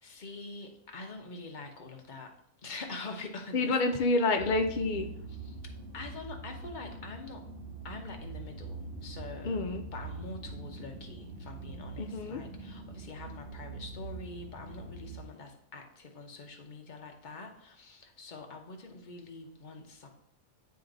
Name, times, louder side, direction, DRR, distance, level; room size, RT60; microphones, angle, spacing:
voice 1, 0.0-2.4 2.6-4.1 5.3-5.6 5.9-7.4 7.8-9.6 9.9-20.1, left 3 dB, 40° left, 3 dB, 0.8 m, -45 dB
voice 2, 3.5-5.2 9.4-9.8 12.0-12.4, left 3 dB, 85° left, 5 dB, 0.4 m, -28 dB
sound 1, 4.4-15.2, right 3 dB, 45° right, 1.0 m, -43 dB
9.2 x 3.1 x 3.9 m, 0.70 s
omnidirectional pair, 1.5 m